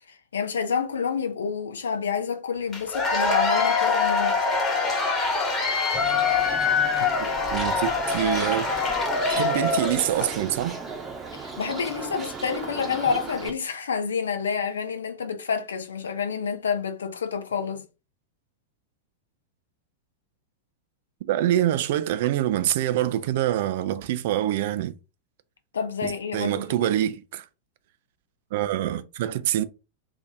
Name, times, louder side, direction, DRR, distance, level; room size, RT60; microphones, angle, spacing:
voice 1, 0.1-4.4 11.3-17.8 25.7-26.9, left 6 dB, 70° left, 0.6 m, -28 dB
Cheering / Applause / Crowd, 2.7-10.4, left 4 dB, 25° left, 1.1 m, -24 dB
Bird, 5.9-13.5, right 4 dB, 15° right, 0.8 m, -37 dB
voice 2, 7.2-8.7 9.3-10.8 21.3-24.9 26.0-27.4 28.5-29.6, right 12 dB, 55° right, 0.4 m, -25 dB
2.6 x 2.5 x 3.7 m
figure-of-eight pair, 90°, 0 cm